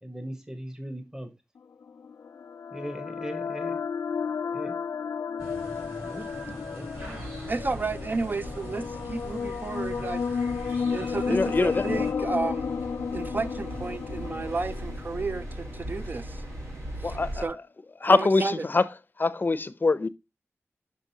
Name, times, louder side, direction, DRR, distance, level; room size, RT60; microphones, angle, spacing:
voice 1, 0.0-1.3 2.7-3.8 4.5-4.8 6.0-6.3 6.7-7.2, equal, 15° right, 1.0 m, -39 dB
sound 1, 1.8-15.9, left 6 dB, 85° left, 0.3 m, -33 dB
sound 2, 5.4-12.1, right 1 dB, 55° right, 3.5 m, -43 dB
sound 3, 6.9-17.5, right 1 dB, 80° right, 3.2 m, -40 dB
voice 2, 7.5-10.2 10.8-12.7 13.1-16.4 17.0-17.6 18.1-18.5, right 3 dB, 40° right, 0.6 m, -32 dB
voice 3, 11.3-12.0 17.0-17.5 18.0-18.9 19.2-20.1, left 3 dB, 45° left, 0.6 m, -24 dB
6.1 x 5.9 x 2.7 m
wide cardioid pair, 85°, 5 cm